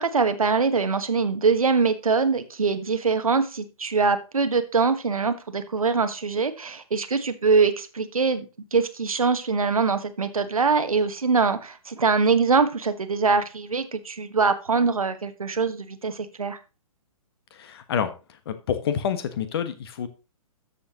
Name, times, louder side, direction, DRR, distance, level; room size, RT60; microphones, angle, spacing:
voice 1, 0.0-8.5 8.7-16.6, right 4 dB, 70° right, 10 dB, 1.2 m, -23 dB
voice 2, 17.5-18.1 18.4-20.1, left 8 dB, 45° left, 11 dB, 1.3 m, -28 dB
12.5 x 7.0 x 3.0 m, 0.31 s
figure-of-eight pair, 120°, 19 cm